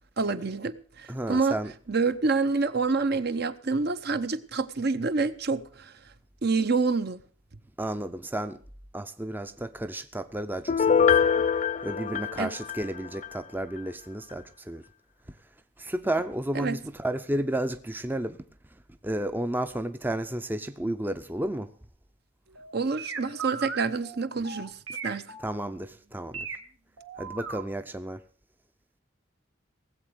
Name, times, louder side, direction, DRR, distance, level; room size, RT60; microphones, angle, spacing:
voice 1, 0.2-1.6 1.9-5.9 6.4-7.2 12.4-12.5 16.5-16.8 22.7-24.7 25.0-25.3, right 4 dB, 55° right, 0.8 m, -27 dB
voice 2, 1.1-1.7 7.8-8.6 8.9-11.3 11.8-14.8 15.8-18.4 19.0-21.7 25.4-26.5 27.2-28.2, right 1 dB, 10° right, 0.5 m, -32 dB
Piano, 10.7-13.4 13.8-13.9, left 6 dB, 40° left, 0.6 m, -24 dB
sound 1, 22.6-26.6 27.0-27.6 28.0-28.1, right 6 dB, 85° right, 1.9 m, -37 dB
18.0 x 8.0 x 6.4 m
head